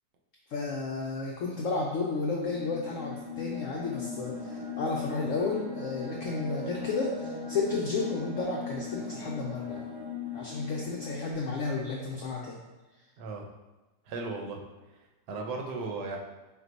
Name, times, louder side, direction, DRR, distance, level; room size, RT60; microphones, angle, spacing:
voice 1, 0.5-9.9 10.3-12.6, left 4 dB, 80° left, -2 dB, 0.7 m, -32 dB
sound 1, 2.1-11.3, left 4 dB, 55° right, 0.8 m, -39 dB
voice 2, 13.2-13.5 14.1-14.6 15.3-16.2, right 3 dB, 80° right, 1 dB, 1.2 m, -35 dB
4.4 x 2.2 x 3.9 m, 1.1 s
omnidirectional pair, 1.9 m